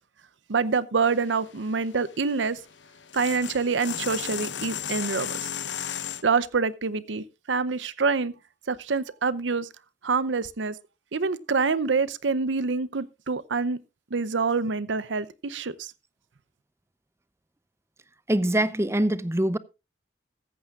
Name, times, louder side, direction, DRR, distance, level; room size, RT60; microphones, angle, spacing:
voice 1, 0.5-2.6 3.1-5.4 6.2-8.4 8.7-9.7 10.0-10.8 11.1-13.8 14.1-15.9, right 4 dB, 85° right, 0.7 m, -26 dB
sound 1, 1.0-6.2, left 9 dB, 80° left, 0.9 m, -35 dB
voice 2, 18.3-19.6, right 1 dB, 15° right, 0.6 m, -23 dB
14.5 x 14.0 x 2.4 m
head